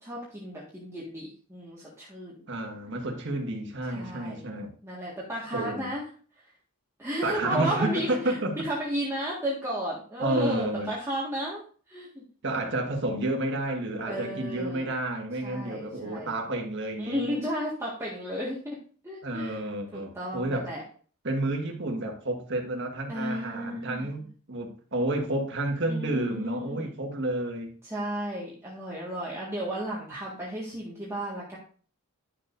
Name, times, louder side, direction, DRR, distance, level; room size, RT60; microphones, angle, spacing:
voice 1, 0.0-2.4 3.9-4.5 4.8-6.0 7.0-11.6 11.9-12.2 14.1-14.9 15.4-16.3 17.0-18.8 19.0-19.6 19.9-20.8 23.1-24.2 25.9-26.9 27.8-31.6, equal, 15° right, -6 dB, 1.7 m, -33 dB
voice 2, 2.5-4.7 5.5-5.9 7.2-8.5 10.2-10.9 12.4-17.3 19.2-20.7 21.2-27.7, right 1 dB, 55° right, 2 dB, 1.7 m, -30 dB
11.0 x 6.8 x 2.6 m, 0.42 s
head